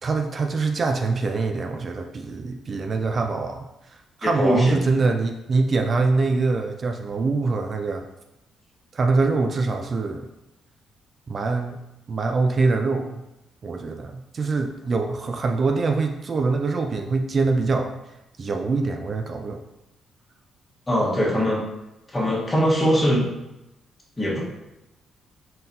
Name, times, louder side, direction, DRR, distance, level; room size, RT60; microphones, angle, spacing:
voice 1, 0.0-3.6 4.2-8.0 8.9-10.3 11.3-11.8 12.1-13.2 13.6-17.9 18.4-19.6, right 3 dB, 40° right, 4 dB, 0.3 m, -24 dB
voice 2, 4.2-4.7 20.9-21.6 22.1-23.3 24.2-24.4, equal, 20° left, -4 dB, 1.3 m, -21 dB
4.1 x 3.9 x 2.6 m, 0.92 s
cardioid pair, 90°, 0 cm